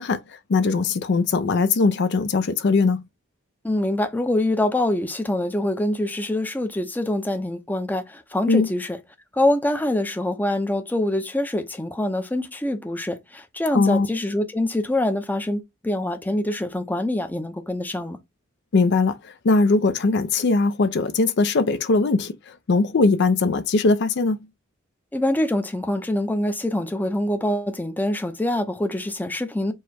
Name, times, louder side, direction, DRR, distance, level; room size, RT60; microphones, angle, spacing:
voice 1, 0.0-3.0 8.5-8.7 13.7-14.1 18.7-24.4, left 3 dB, 55° left, 0.5 m, -20 dB
voice 2, 3.6-9.0 9.3-18.2 25.1-29.7, left 1 dB, 10° left, 0.6 m, -25 dB
4.7 x 2.2 x 4.2 m
head